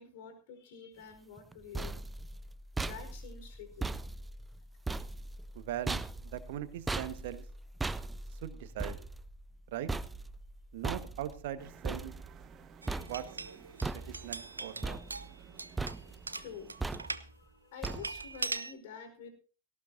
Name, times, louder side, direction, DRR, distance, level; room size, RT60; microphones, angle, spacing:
voice 1, 0.0-1.9 2.8-4.0 16.4-16.7 17.2-19.3, left 6 dB, 50° left, 7 dB, 4.7 m, -48 dB
sound 1, 1.4-12.6 12.9-13.5 13.8-14.5 14.8-15.5 15.8-16.3 16.8-17.4 17.8-18.4, right 3 dB, 10° right, 0.6 m, -39 dB
voice 2, 5.5-7.4 8.4-9.0 9.7-9.9 10.7-12.1 13.0-13.3 13.9-15.0, right 12 dB, 55° right, 11 dB, 1.6 m, -40 dB
sound 2, 11.6-17.1, right 7 dB, 25° right, 1.4 m, -56 dB
sound 3, 12.8-17.3 17.8-18.7, right 3 dB, 80° right, 0.7 m, -41 dB
18.0 x 17.5 x 2.8 m, 0.35 s
figure-of-eight pair, 90°, 0 cm